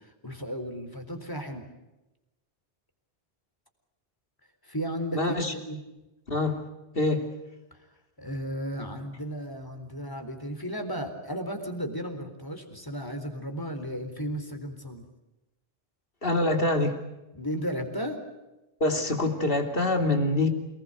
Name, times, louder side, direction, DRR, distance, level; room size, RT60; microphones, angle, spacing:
voice 1, 0.0-1.7 4.6-5.8 8.2-15.1 17.3-18.2, equal, 20° left, 6 dB, 4.0 m, -34 dB
voice 2, 5.1-5.5 6.3-6.6 6.9-7.3 16.2-17.0 18.8-20.5, left 2 dB, 55° left, 5 dB, 3.3 m, -25 dB
28.5 x 20.5 x 8.0 m, 1.0 s
omnidirectional pair, 1.1 m